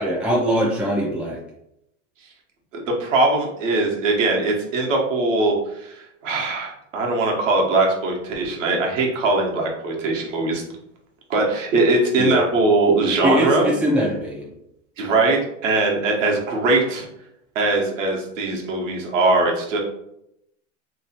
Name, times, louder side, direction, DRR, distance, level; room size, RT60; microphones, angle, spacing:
voice 1, 0.0-1.4 12.2-12.4 13.2-14.5, equal, 5° right, -3 dB, 0.4 m, -22 dB
voice 2, 2.9-10.6 11.3-13.7 15.0-17.1 17.5-19.8, right 2 dB, 80° right, -1 dB, 1.1 m, -21 dB
3.1 x 2.9 x 2.8 m, 0.81 s
supercardioid pair, 135°, 37 cm